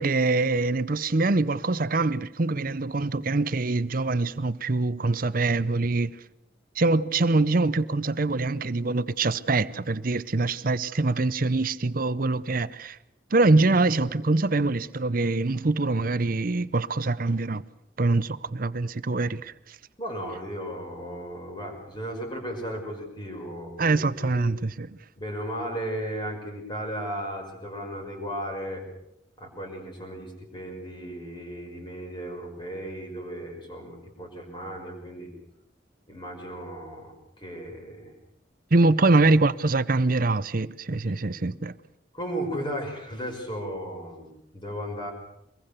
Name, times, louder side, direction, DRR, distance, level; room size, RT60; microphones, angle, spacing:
voice 1, 0.0-6.1 6.8-13.0 13.3-17.6 18.0-19.5 23.8-25.0 38.7-41.8, right 3 dB, 50° right, 0.7 m, -24 dB
voice 2, 20.0-24.4 25.2-28.8 29.4-35.3 36.1-38.1 39.0-39.1 42.1-45.1, equal, 25° left, 5.6 m, -35 dB
24.0 x 21.5 x 6.8 m
head